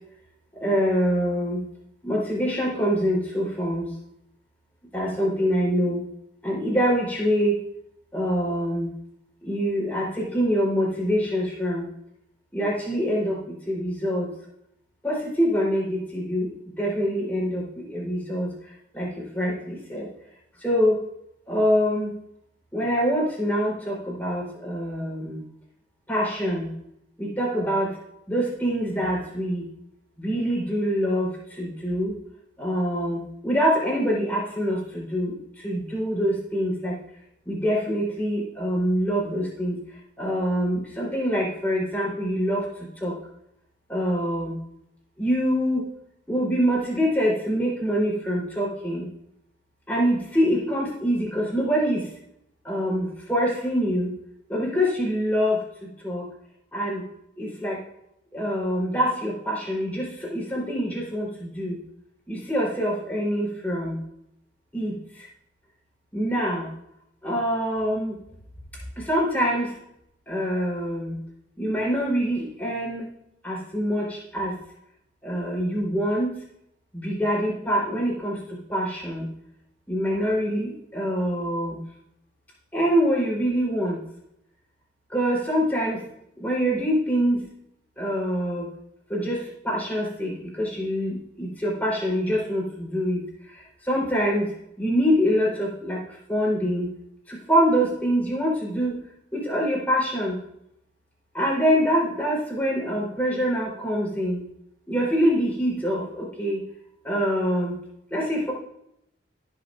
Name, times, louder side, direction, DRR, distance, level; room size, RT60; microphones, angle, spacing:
voice 1, 0.6-1.7 2.0-3.9 4.9-6.0 6.4-7.6 8.1-8.9 9.4-11.9 12.5-14.3 15.0-18.5 18.9-20.1 20.6-21.0 21.5-22.2 22.7-25.4 26.1-26.7 27.2-28.0 28.3-29.7 30.2-32.1 32.6-37.0 37.5-39.8 40.2-42.7 43.0-43.2 43.9-44.6 45.2-45.9 46.3-49.1 49.9-52.1 52.6-54.1 54.5-56.3 56.7-57.0 57.4-57.8 58.3-61.8 62.3-64.0 64.7-65.3 66.1-66.7 67.2-68.2 69.0-69.7 70.3-71.2 71.6-73.1 73.4-74.6 75.2-76.4 76.9-79.3 79.9-81.8 82.7-84.0 85.1-86.0 86.4-87.4 88.0-88.7 89.1-93.2 93.8-96.9 97.3-99.0 99.3-100.4 101.3-104.4 104.9-106.6 107.0-107.8 108.1-108.5, equal, 10° left, -5 dB, 3.8 m, -25 dB
16.0 x 6.9 x 2.6 m, 0.78 s
head